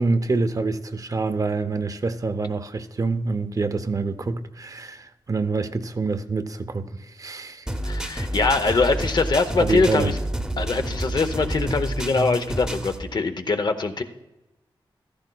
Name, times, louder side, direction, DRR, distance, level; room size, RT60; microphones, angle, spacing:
voice 1, 0.0-7.8 8.6-8.8 9.6-10.1, right 3 dB, 40° right, 0.6 m, -26 dB
sound 1, 7.7-13.0, right 1 dB, 5° right, 0.8 m, -29 dB
voice 2, 7.8-10.1 10.6-14.0, left 3 dB, 50° left, 0.7 m, -23 dB
15.0 x 13.5 x 2.3 m
wide cardioid pair, 110°, 9 cm